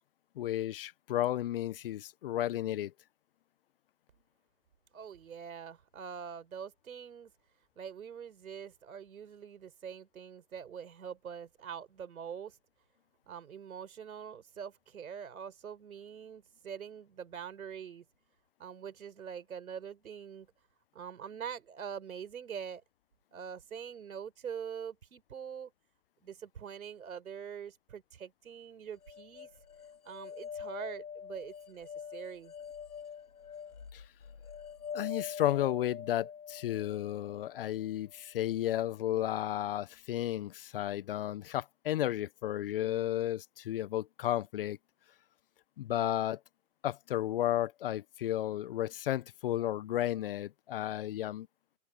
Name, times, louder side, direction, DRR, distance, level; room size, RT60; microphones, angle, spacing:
voice 1, 0.4-2.9 33.9-34.0 34.9-44.8 45.8-46.4 46.8-51.5, left 13 dB, 40° left, 1.0 m, -33 dB
voice 2, 4.9-7.3 7.8-12.5 13.3-18.0 18.6-20.5 20.9-22.8 23.3-25.7 26.2-29.5 30.0-32.5, right 7 dB, 65° right, 4.4 m, -44 dB
sound 1, 29.0-38.2, left 7 dB, 75° left, 5.2 m, -45 dB
open air
hypercardioid pair, 135°, 45 cm